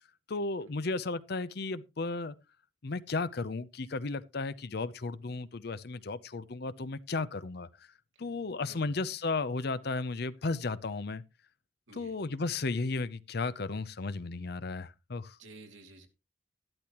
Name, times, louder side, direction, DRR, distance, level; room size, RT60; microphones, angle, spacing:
voice 1, 0.3-2.3 2.8-7.7 8.2-11.2 11.9-15.4, left 3 dB, 55° left, 0.6 m, -34 dB
voice 2, 15.4-16.1, right 2 dB, 75° right, 2.2 m, -52 dB
12.0 x 12.0 x 3.0 m
head